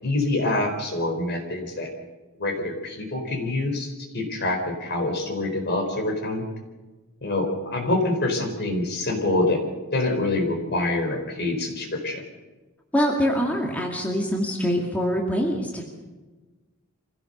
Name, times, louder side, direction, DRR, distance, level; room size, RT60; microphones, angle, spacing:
voice 1, 0.0-1.9 2.4-6.5 7.2-9.6 9.9-12.2, left 2 dB, 45° left, 4 dB, 4.1 m, -26 dB
voice 2, 12.9-15.9, equal, 5° left, -1 dB, 2.3 m, -24 dB
25.5 x 16.5 x 6.7 m, 1.2 s
head